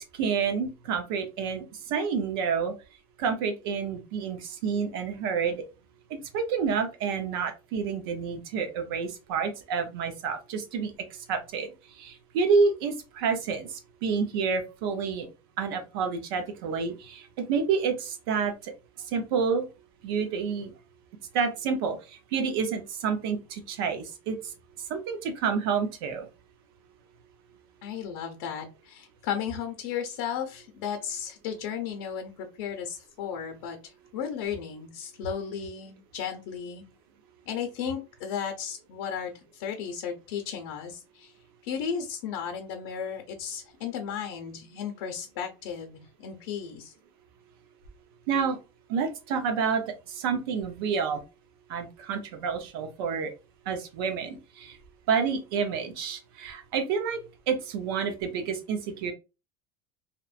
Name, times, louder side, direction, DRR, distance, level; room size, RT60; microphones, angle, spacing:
voice 1, 0.0-2.7 3.2-5.6 6.3-10.9 11.3-11.7 12.0-13.7 14.0-15.3 15.6-17.2 17.5-18.7 19.1-19.6 20.0-20.7 21.3-22.0 22.3-24.4 24.9-26.3 48.3-48.6 48.9-49.8 50.1-51.2 51.7-53.3 53.7-54.8 55.1-57.2 57.5-59.1, right 6 dB, 80° right, 6 dB, 0.7 m, -28 dB
voice 2, 27.8-36.8 37.5-41.3 41.6-46.9, left 8 dB, 75° left, 4 dB, 0.6 m, -35 dB
2.9 x 2.1 x 2.4 m, 0.29 s
supercardioid pair, 145°, 12 cm